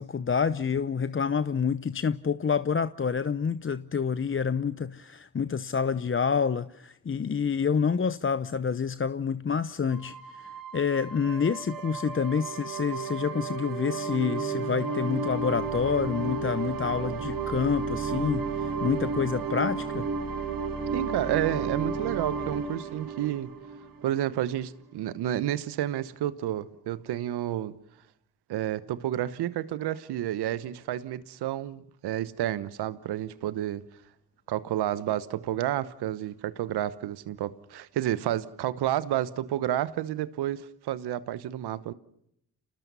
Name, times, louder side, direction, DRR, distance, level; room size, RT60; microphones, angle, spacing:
voice 1, 0.0-20.1, left 6 dB, 30° left, 0.8 m, -28 dB
sound 1, 9.9-24.3, right 5 dB, 60° right, 2.1 m, -33 dB
voice 2, 20.9-23.5 24.0-27.7 28.5-33.8 34.5-41.9, right 12 dB, 80° right, 1.1 m, -30 dB
29.5 x 20.0 x 5.5 m
supercardioid pair, 45°, 39 cm